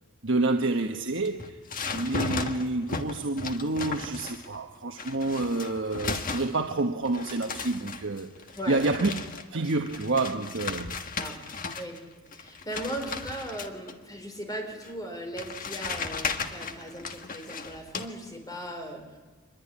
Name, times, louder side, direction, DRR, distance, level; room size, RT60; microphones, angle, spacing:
voice 1, 0.2-1.6 1.9-8.3 8.7-9.1 9.5-11.0, right 2 dB, 60° right, 1.3 m, -28 dB
sound 1, 1.2-4.6 5.0-6.8 7.1-12.0 12.3-13.9 14.8-14.9 15.4-18.1, left 4 dB, 40° left, 1.6 m, -36 dB
voice 2, 8.6-8.9 11.2-11.4 11.8-12.0 12.3-19.2, right 1 dB, 15° left, 4.9 m, -38 dB
25.0 x 22.0 x 9.9 m
head